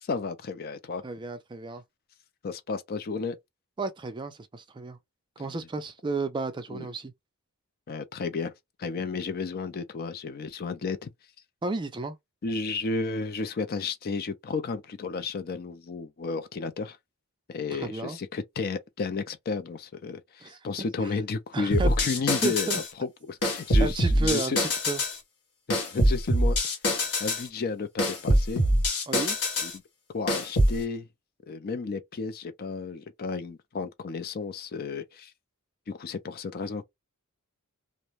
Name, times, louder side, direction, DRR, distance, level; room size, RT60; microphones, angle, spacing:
voice 1, 0.0-1.0 2.4-3.4 6.7-6.9 7.9-8.5 8.8-11.1 12.4-17.0 17.5-24.6 25.7-26.6 27.2-28.6 29.6-29.7 30.1-31.1 31.5-35.3 35.9-36.8, left 4 dB, 45° left, 0.4 m, -32 dB
voice 2, 1.0-1.8 3.8-5.0 5.4-7.1 11.6-12.2 17.7-18.2 20.4-20.6 21.0-21.1 21.5-21.9 22.4-22.8 23.8-25.0 29.1-29.4, right 3 dB, 20° right, 0.4 m, -32 dB
sound 1, 21.7-22.9 23.4-25.2 25.7-27.5 28.0-29.8 30.3-30.8, equal, 80° left, 1.1 m, -24 dB
2.5 x 2.1 x 3.0 m
head